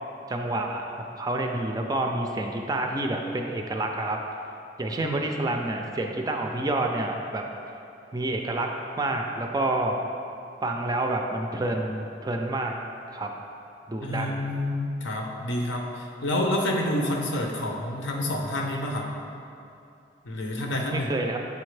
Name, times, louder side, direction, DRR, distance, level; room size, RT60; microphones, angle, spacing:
voice 1, 0.3-4.2 4.8-7.4 8.1-8.7 9.0-10.0 10.6-12.7 13.1-13.3 13.9-14.5 20.9-21.4, right 2 dB, 20° right, 3 dB, 0.3 m, -28 dB
voice 2, 14.0-19.1 20.2-21.1, left 1 dB, 85° left, 1 dB, 0.7 m, -28 dB
6.9 x 4.3 x 3.2 m, 2.7 s
head